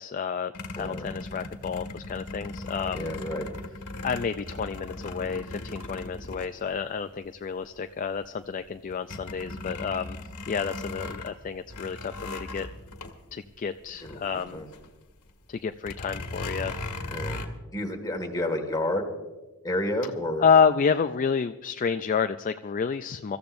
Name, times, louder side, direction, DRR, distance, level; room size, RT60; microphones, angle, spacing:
voice 1, 0.0-3.1 4.0-10.2 10.5-12.7 13.3-14.6 15.5-16.7 20.4-23.4, left 6 dB, 35° left, 9 dB, 0.3 m, -29 dB
sound 1, 0.5-7.2 7.8-7.9 8.2-14.9 15.2-15.3 15.8-17.5, left 2 dB, 90° left, 1.7 m, -38 dB
voice 2, 2.9-3.5 14.0-14.7 17.1-17.4 17.7-19.0 19.6-20.5, left 1 dB, 15° left, 3 dB, 1.9 m, -30 dB
26.0 x 14.0 x 2.6 m, 1.1 s
head